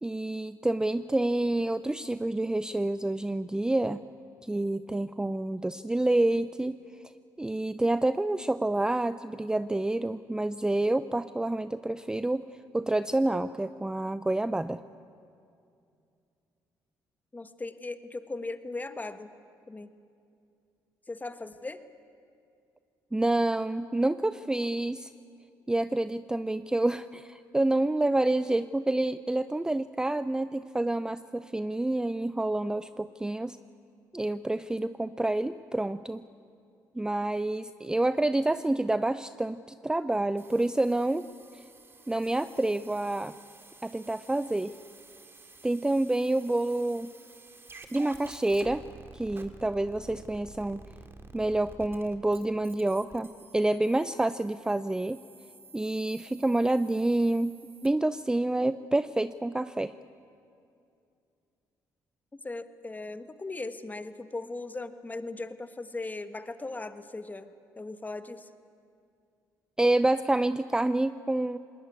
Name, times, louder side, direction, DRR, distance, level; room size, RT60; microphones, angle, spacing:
voice 1, 0.0-4.0 4.4-6.8 7.4-12.4 12.7-14.8 23.1-25.1 25.7-33.6 34.1-36.2 36.9-41.3 41.5-41.6 42.1-43.4 43.8-44.7 45.6-47.1 47.9-48.8 49.1-50.8 51.3-55.2 55.7-59.9 69.8-71.6, right 2 dB, 10° right, 13 dB, 0.5 m, -28 dB
voice 2, 17.3-19.3 19.7-19.9 21.1-21.8 62.3-68.5, left 2 dB, 20° left, 10 dB, 1.4 m, -38 dB
sound 1, 40.4-57.9, right 3 dB, 30° right, 2.1 m, -52 dB
21.0 x 19.5 x 9.6 m, 2.5 s
cardioid pair, 80°, 8 cm